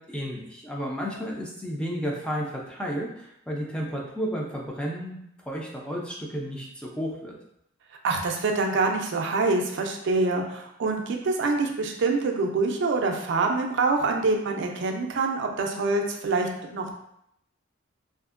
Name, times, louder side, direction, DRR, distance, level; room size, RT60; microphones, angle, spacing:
voice 1, 0.1-5.2 5.5-7.3, equal, 5° left, -2 dB, 0.4 m, -32 dB
voice 2, 8.0-16.9, right 3 dB, 60° right, 2 dB, 0.4 m, -25 dB
2.7 x 2.5 x 2.4 m, 0.76 s
head